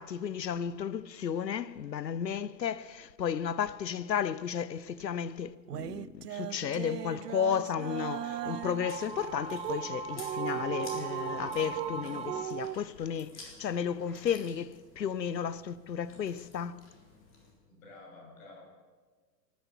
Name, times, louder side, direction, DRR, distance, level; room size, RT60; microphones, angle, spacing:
voice 1, 0.0-16.8, left 8 dB, 80° left, 0.7 m, -33 dB
sound 1, 5.7-8.9 9.6-9.8 10.1-11.9 12.3-12.8, right 11 dB, 70° right, 0.6 m, -37 dB
sound 2, 6.7-12.4, right 6 dB, 10° right, 0.6 m, -40 dB
Chewing mastication, 8.7-17.5, left 3 dB, 25° left, 4.0 m, -53 dB
voice 2, 17.7-18.6, left 3 dB, 55° left, 6.4 m, -51 dB
18.5 x 10.0 x 7.2 m
figure-of-eight pair, 100°, 50 cm